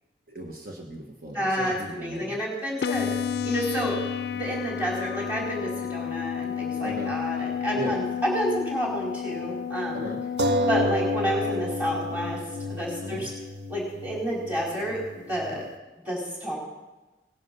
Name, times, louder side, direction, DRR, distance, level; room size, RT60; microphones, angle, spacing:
voice 1, 0.3-2.4 6.8-7.1 7.7-8.0 9.9-10.2 13.0-13.3, right 1 dB, 55° right, 1 dB, 1.4 m, -36 dB
voice 2, 1.3-3.1 3.4-4.0 4.3-10.1 10.7-12.4 12.7-13.3 13.7-15.6 16.0-16.6, equal, 10° right, -4 dB, 4.7 m, -29 dB
sound 1, 2.8-10.8, left 8 dB, 60° left, 0.4 m, -31 dB
sound 2, 2.9-6.8 7.1-7.2 10.4-15.6, left 1 dB, 80° right, 1.1 m, -32 dB
18.5 x 11.0 x 5.5 m, 1.1 s
head